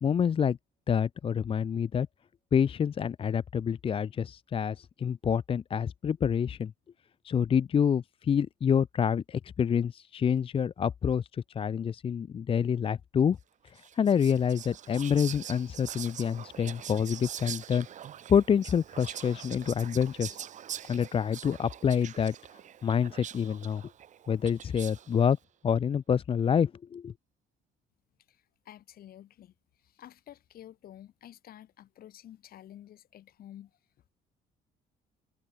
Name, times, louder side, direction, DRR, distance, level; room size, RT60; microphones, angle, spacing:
voice 1, 0.0-0.6 0.9-2.1 2.5-6.7 7.2-13.4 13.7-17.9 18.3-20.4 20.9-22.3 22.8-23.8 24.3-25.4 25.6-27.1, left 7 dB, 35° left, 0.6 m, -27 dB
Whispering, 13.8-25.2, right 10 dB, 45° right, 0.8 m, -44 dB
voice 2, 28.3-29.5 29.8-33.7, left 12 dB, 60° left, 4.9 m, -50 dB
cardioid pair, 110°, 17 cm